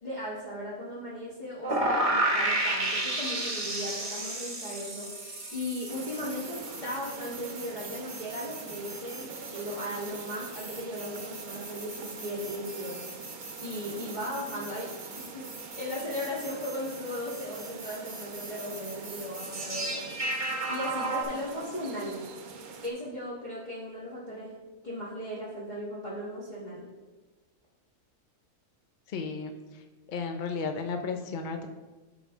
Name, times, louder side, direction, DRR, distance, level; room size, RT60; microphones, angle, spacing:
voice 1, 0.0-5.1 5.5-13.1 13.6-14.9 15.2-15.5 15.8-20.1 20.7-22.2 22.8-24.6 24.8-26.9, left 1 dB, 35° left, -8 dB, 1.4 m, -37 dB
sound 1, 1.6-21.2, right 1 dB, 30° right, 0.9 m, -34 dB
sound 2, 5.9-22.9, right 5 dB, 90° right, 1.2 m, -45 dB
voice 2, 29.1-29.8 30.1-31.7, left 4 dB, 65° left, 6 dB, 0.4 m, -34 dB
11.5 x 4.0 x 3.5 m, 1.2 s
omnidirectional pair, 1.5 m